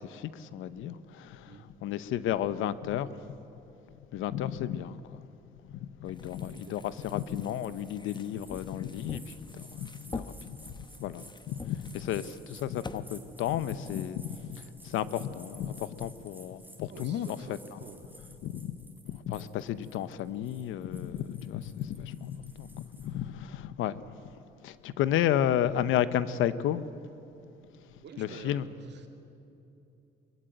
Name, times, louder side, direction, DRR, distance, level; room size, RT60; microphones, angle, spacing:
voice 1, 0.0-1.5 1.8-3.4 4.1-5.2 5.8-10.7 11.0-17.3 18.4-18.8 19.1-24.2 24.6-26.8 28.2-28.7, left 11 dB, 90° left, 0.8 m, -33 dB
sound 1, 6.0-13.0, left 3 dB, 20° left, 1.0 m, -46 dB
sound 2, 6.2-23.1, right 1 dB, 10° right, 3.3 m, -55 dB
voice 2, 16.9-18.1 23.6-23.7 28.0-29.1, right 5 dB, 60° right, 2.4 m, -49 dB
23.0 x 15.5 x 9.3 m
cardioid pair, 90°, 20 cm